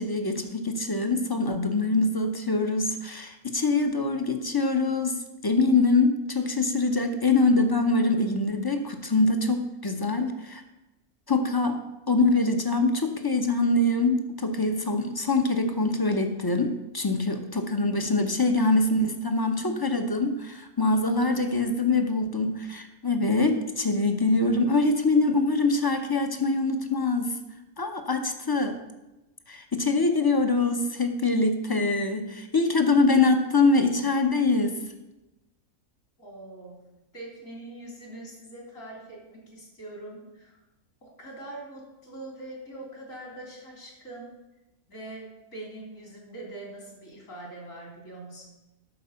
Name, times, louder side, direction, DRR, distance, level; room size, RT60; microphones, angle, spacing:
voice 1, 0.0-10.6 11.3-27.3 27.8-28.8 29.5-34.8, left 3 dB, 20° left, 6 dB, 0.6 m, -24 dB
voice 2, 36.2-36.8 37.1-40.6 41.0-44.3 44.9-48.5, right 2 dB, 65° left, -1 dB, 3.6 m, -43 dB
12.0 x 4.7 x 6.9 m, 1.0 s
omnidirectional pair, 1.5 m